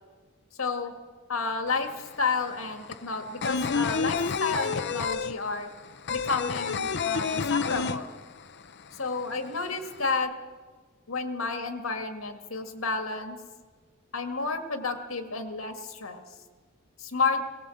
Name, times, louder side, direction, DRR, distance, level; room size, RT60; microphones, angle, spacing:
voice 1, 0.6-0.9 1.3-5.7 6.1-8.1 8.9-10.3 11.1-13.4 14.1-16.2 17.0-17.4, left 4 dB, 80° left, 6 dB, 1.9 m, -31 dB
sound 1, 1.7-1.8 2.0-8.6 8.9-9.0 9.3-10.1, left 5 dB, 55° left, 0.8 m, -29 dB
18.5 x 18.0 x 7.8 m, 1.4 s
head